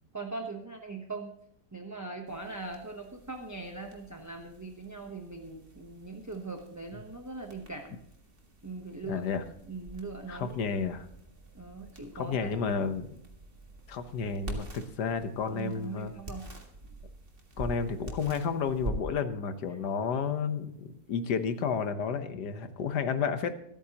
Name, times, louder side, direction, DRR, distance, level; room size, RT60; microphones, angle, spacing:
voice 1, 0.1-1.3 1.7-8.0 8.6-9.2 9.7-10.6 11.5-12.5 15.5-16.5, right 3 dB, 15° right, 2 dB, 0.7 m, -40 dB
sound 1, 2.3-21.9, right 1 dB, 35° right, 1.9 m, -46 dB
voice 2, 9.0-9.4 10.3-11.1 12.1-13.2 13.9-16.1 17.6-23.5, left 6 dB, 75° left, 9 dB, 1.6 m, -31 dB
25.5 x 8.9 x 2.9 m, 0.75 s
omnidirectional pair, 1.8 m